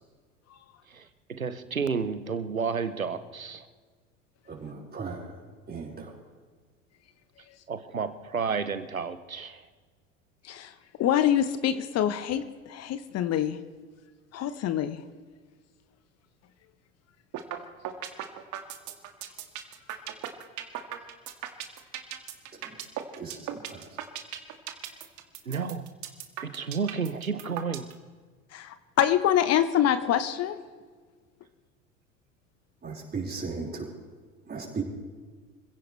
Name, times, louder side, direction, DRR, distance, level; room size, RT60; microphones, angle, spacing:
voice 1, 0.9-3.6 7.7-9.6 25.5-25.8 26.4-27.9, right 5 dB, 90° right, 12 dB, 1.1 m, -31 dB
voice 2, 4.5-5.4 5.7-6.1 22.6-22.8 23.2-24.0 32.8-33.9 34.5-34.8, right 4 dB, 25° right, -2 dB, 5.1 m, -37 dB
voice 3, 11.0-13.6 14.3-15.0 28.5-30.6, left 10 dB, 40° left, 12 dB, 1.0 m, -25 dB
sound 1, 17.3-17.6 17.8-27.9, right 12 dB, 45° right, 2.0 m, -36 dB
26.0 x 16.5 x 3.3 m, 1.5 s
figure-of-eight pair, 70°, 40 cm